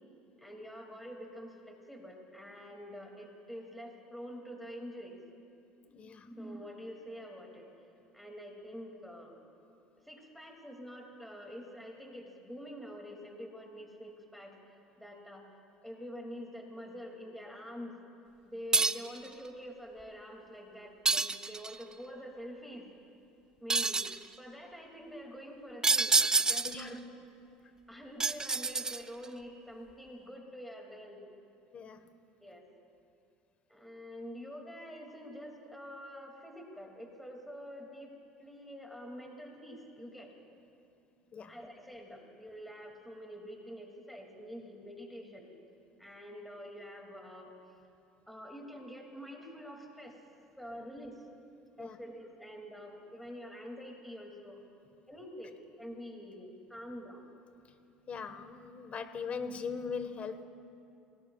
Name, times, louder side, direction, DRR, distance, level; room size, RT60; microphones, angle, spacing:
voice 1, 0.4-5.5 6.2-7.7 8.1-9.4 10.0-14.6 15.0-15.5 15.8-18.1 18.4-22.9 23.6-24.0 24.4-26.2 26.5-27.0 27.9-31.2 32.4-32.6 33.7-38.1 38.4-40.3 41.5-45.5 46.0-47.5 48.3-50.2 50.6-51.3 51.8-54.6 55.1-57.3, equal, ahead, 1 dB, 2.5 m, -46 dB
voice 2, 5.9-6.3 26.6-26.9 31.7-32.0 41.3-41.5 51.8-52.0 58.1-60.4, left 5 dB, 40° left, 10 dB, 1.3 m, -40 dB
sound 1, 18.7-19.2 21.0-21.8 23.7-24.2 25.8-26.9 28.2-29.2, right 3 dB, 20° right, 0.5 m, -28 dB
29.0 x 19.0 x 2.4 m, 2.6 s
hypercardioid pair, 75°, 3 cm